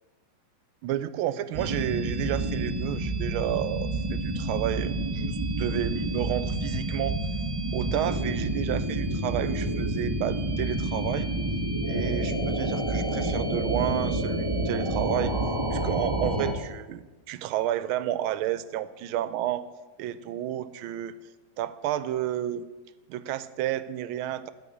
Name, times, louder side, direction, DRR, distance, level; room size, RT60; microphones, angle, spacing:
voice 1, 0.8-7.2 7.7-11.3 11.9-15.3 15.7-19.6 20.0-21.1 21.6-22.7 23.1-24.5, right 12 dB, 90° right, 15 dB, 1.4 m, -31 dB
sound 1, 1.5-16.5, right 1 dB, 40° right, 0.3 m, -29 dB
12.5 x 4.7 x 8.5 m, 1.2 s
omnidirectional pair, 2.2 m